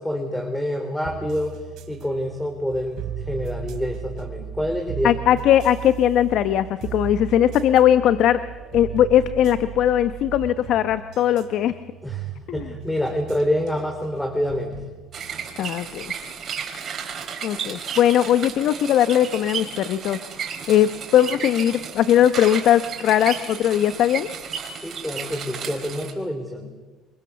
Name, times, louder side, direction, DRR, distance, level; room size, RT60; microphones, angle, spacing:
voice 1, 0.0-1.6 1.9-5.2 12.0-14.8 24.8-26.7, equal, 5° left, 4 dB, 3.8 m, -27 dB
sound 1, 1.0-16.3, right 11 dB, 65° right, 3.4 m, -37 dB
voice 2, 5.0-8.4 8.7-11.7 12.5-12.7 15.6-16.1 17.4-24.3, left 11 dB, 65° left, 12 dB, 1.0 m, -19 dB
sound 2, 15.1-26.1, right 7 dB, 45° right, 5.0 m, -33 dB
27.5 x 23.0 x 7.1 m, 1.3 s
supercardioid pair, 90°, 0 cm